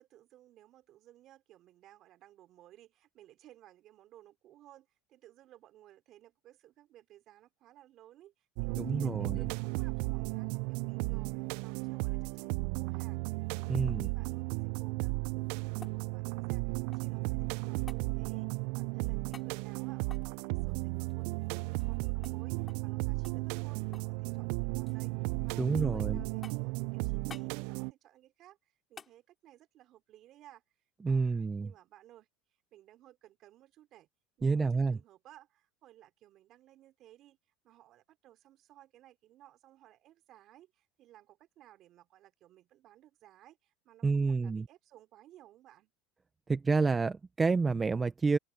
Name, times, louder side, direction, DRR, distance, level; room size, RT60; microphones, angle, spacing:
voice 1, 0.0-30.6 31.1-32.3 32.7-34.1 34.4-37.4 37.6-45.9, right 13 dB, 50° right, 4.3 m, -59 dB
sound 1, 8.6-27.9, right 28 dB, 70° right, 0.4 m, -34 dB
voice 2, 8.8-9.4 13.7-14.1 25.6-26.2 31.0-31.7 34.4-35.0 44.0-44.6 46.5-48.4, right 4 dB, 20° right, 0.8 m, -29 dB
sound 2, 15.2-17.3 17.9-18.1 19.3-19.5 20.0-22.0 22.2-22.4 22.7-22.9 23.2-24.2 24.4-25.0 25.5-26.0 26.4-26.8 27.3-27.5 29.0-29.2 31.5-31.6, left 6 dB, 25° left, 2.4 m, -53 dB
supercardioid pair, 105°, 0 cm